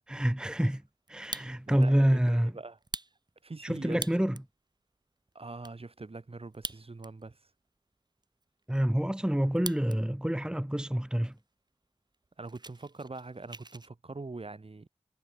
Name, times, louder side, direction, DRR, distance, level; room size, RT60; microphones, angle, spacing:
voice 1, 0.1-0.8 1.1-2.5 3.6-4.4 8.7-11.3, equal, 5° right, 1.3 m, -27 dB
Fire, 1.1-1.9 2.3-2.4 2.8-4.5 5.0-5.1 5.3-5.7 6.5-7.3 7.6-7.7 8.2-10.0 10.3-10.7 11.3-11.4 11.7-11.9 12.1-13.9, right 2 dB, 35° right, 1.4 m, -43 dB
voice 2, 1.7-2.8 3.4-4.0 5.3-7.5 12.4-14.9, right 3 dB, 55° right, 7.6 m, -43 dB
wide cardioid pair, 70°, 12 cm